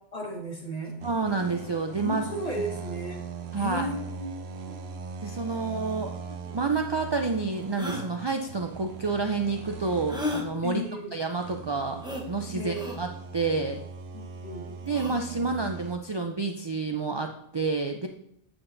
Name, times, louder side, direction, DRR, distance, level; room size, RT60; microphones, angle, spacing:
voice 1, 0.1-1.0 2.0-3.2 3.6-4.5 6.3-6.6 10.6-11.1 12.5-12.8 14.1-14.7, equal, 35° left, -2 dB, 1.9 m, -34 dB
voice 2, 1.0-2.2 2.5-2.6 3.5-3.9 5.2-6.2 6.5-10.8 11.1-12.0 12.3-13.8 14.8-18.1, right 4 dB, 40° right, 4 dB, 0.4 m, -29 dB
sound 1, 1.0-10.8 11.3-16.0, right 6 dB, 75° right, 1.0 m, -40 dB
sound 2, 6.7-6.8 7.7-8.1 10.1-10.5 12.0-12.3 12.7-13.0 14.9-15.2, left 2 dB, 5° right, 0.9 m, -33 dB
7.8 x 7.7 x 2.6 m, 0.76 s
omnidirectional pair, 1.1 m